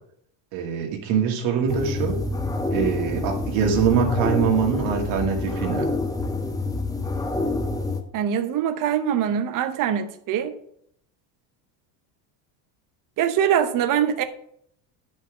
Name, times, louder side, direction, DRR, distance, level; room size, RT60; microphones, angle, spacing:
voice 1, 0.5-2.2 2.7-5.9, right 7 dB, 70° right, 2.2 m, -23 dB
sound 1, 1.7-8.0, left 2 dB, 5° left, 0.8 m, -27 dB
voice 2, 8.1-10.5 13.2-14.2, right 9 dB, 40° right, 0.8 m, -23 dB
9.7 x 5.5 x 5.0 m
cardioid pair, 130°, 49 cm